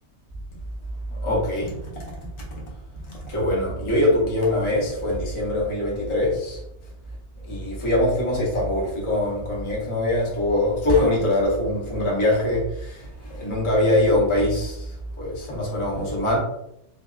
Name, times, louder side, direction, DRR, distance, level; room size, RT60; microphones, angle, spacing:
voice 1, 1.1-2.0 3.1-6.6 7.5-16.4, left 1 dB, 30° left, -5 dB, 0.6 m, -23 dB
2.7 x 2.3 x 2.3 m, 0.82 s
omnidirectional pair, 1.6 m